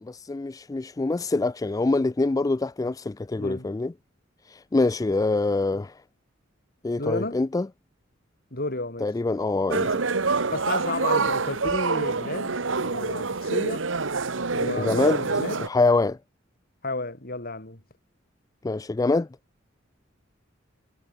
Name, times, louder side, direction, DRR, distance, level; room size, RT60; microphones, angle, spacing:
voice 1, 0.0-3.9 4.5-5.9 6.8-7.7 9.0-9.9 14.8-15.3 15.6-16.2 18.6-19.3, left 3 dB, 20° left, 0.3 m, -25 dB
voice 2, 3.4-3.7 7.0-7.4 8.5-9.1 9.8-9.9 10.5-13.9 14.5-15.6 16.8-17.8, left 2 dB, 50° left, 5.1 m, -32 dB
sound 1, 9.7-15.7, right 4 dB, 75° right, 1.3 m, -26 dB
head